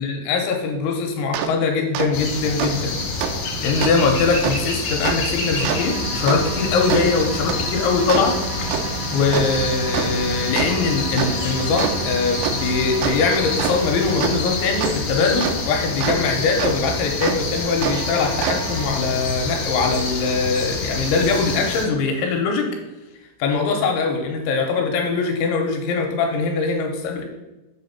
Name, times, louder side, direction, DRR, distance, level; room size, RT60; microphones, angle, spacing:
voice 1, 0.0-3.0 3.6-8.4 9.1-22.7 23.4-27.2, left 4 dB, 80° left, 2 dB, 3.0 m, -22 dB
sound 1, 1.3-1.5 1.9-2.1 2.6-2.7 3.2-3.3 3.8-3.9 4.4-4.5 5.0-5.2 5.6-16.2 16.6-16.7 17.2-17.4 17.8-18.9, right 7 dB, 80° right, 2.5 m, -27 dB
sound 2, 2.1-21.9, left 3 dB, 60° left, 2.9 m, -27 dB
7.7 x 3.6 x 5.7 m, 1.0 s
omnidirectional pair, 5.6 m